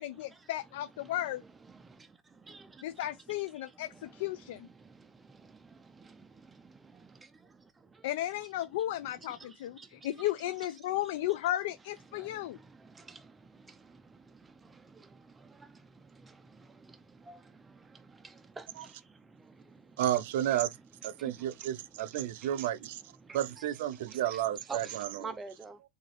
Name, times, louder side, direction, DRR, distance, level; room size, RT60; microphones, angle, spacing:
voice 1, 0.0-1.4 2.8-4.7 8.0-12.6, left 14 dB, 80° left, 0.3 m, -34 dB
voice 2, 1.7-3.1 3.5-8.1 9.3-10.3 12.1-20.0 20.5-20.6 21.2-21.4 22.0-22.7 23.2-23.4 24.1-24.2 24.7-25.8, right 4 dB, 10° right, 0.3 m, -51 dB
voice 3, 20.0-20.8 21.0-23.0 23.3-25.3, right 11 dB, 80° right, 0.4 m, -32 dB
3.9 x 2.7 x 3.1 m
supercardioid pair, 165°, 0 cm